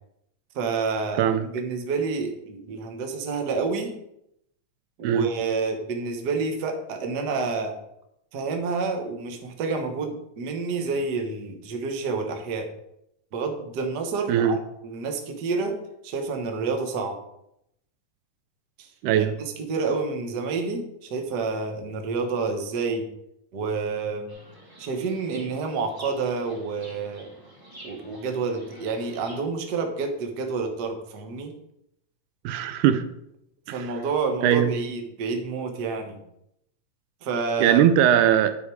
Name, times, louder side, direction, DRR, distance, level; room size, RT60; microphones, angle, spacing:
voice 1, 0.5-3.9 5.0-7.8 8.3-12.7 13.3-14.6 14.8-15.8 16.0-17.2 18.8-18.9 19.1-23.1 23.5-24.3 24.8-27.3 27.8-31.5 33.7-36.2 37.2-37.8, right 4 dB, 55° right, 4 dB, 1.1 m, -29 dB
voice 2, 19.0-19.3 32.5-33.1 33.7-33.9 34.4-34.7 37.6-38.6, right 9 dB, 80° right, 11 dB, 2.0 m, -20 dB
Chirp tweet, 24.3-29.4, right 1 dB, 10° right, 1.0 m, -48 dB
10.0 x 6.3 x 4.7 m, 0.79 s
omnidirectional pair, 3.7 m